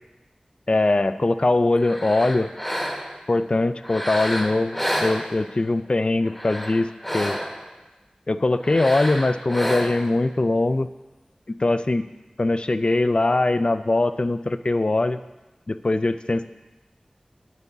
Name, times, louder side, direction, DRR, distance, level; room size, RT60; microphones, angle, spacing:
voice 1, 0.7-2.5 3.3-6.9 7.1-7.4 8.3-10.9 11.5-12.1 12.4-15.2 15.7-16.5, left 2 dB, 45° left, 12 dB, 0.4 m, -21 dB
sound 1, 1.8-3.3 3.8-5.7 6.2-7.7 8.6-10.2, equal, 5° left, 1.1 m, -30 dB
10.5 x 8.2 x 3.6 m, 1.1 s
wide cardioid pair, 55°, 2 cm